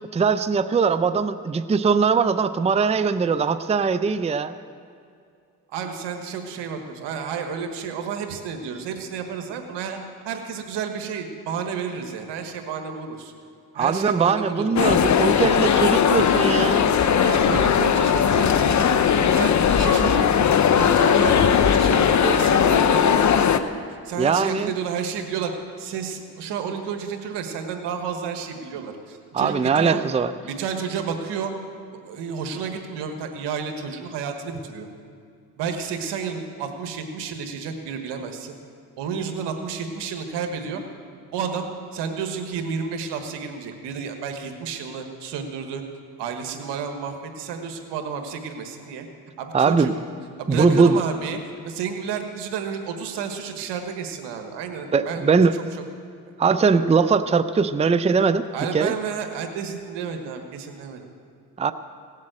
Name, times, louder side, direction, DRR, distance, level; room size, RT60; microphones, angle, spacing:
voice 1, 0.1-4.5 13.8-16.9 24.2-24.7 29.3-30.3 49.5-49.9 50.5-51.0 54.9-55.6 56.4-58.4 58.7-58.9 61.6-61.7, right 5 dB, 15° right, 12 dB, 0.5 m, -20 dB
voice 2, 5.7-10.0 10.2-13.3 13.7-14.6 17.0-18.6 19.3-23.6 24.0-25.5 25.8-30.0 30.4-31.5 31.9-34.9 35.6-38.5 39.0-40.8 41.3-45.8 46.2-49.1 49.4-49.9 50.4-55.8 58.5-61.0, right 6 dB, 85° right, 5 dB, 1.5 m, -31 dB
sound 1, 14.8-23.6, left 7 dB, 45° left, 0.8 m, -18 dB
17.0 x 7.5 x 7.7 m, 2.4 s
supercardioid pair, 70°, 40 cm